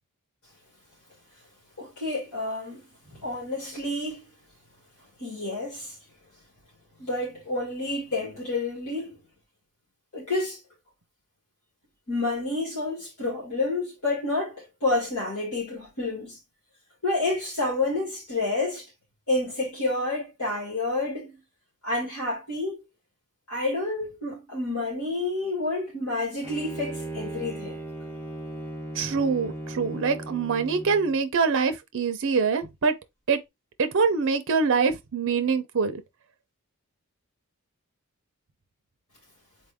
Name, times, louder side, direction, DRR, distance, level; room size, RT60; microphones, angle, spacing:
voice 1, 1.8-2.8 3.2-4.2 5.2-6.0 7.0-9.2 10.1-10.6 12.1-16.4 17.0-18.9 19.3-21.4 21.8-22.8 23.5-27.8, left 2 dB, 70° left, 2.4 m, -29 dB
Bowed string instrument, 26.4-31.2, right 1 dB, 10° left, 1.0 m, -37 dB
voice 2, 28.9-32.9 33.3-33.4 33.8-36.0, right 5 dB, 60° right, 0.6 m, -24 dB
4.1 x 2.6 x 3.5 m
head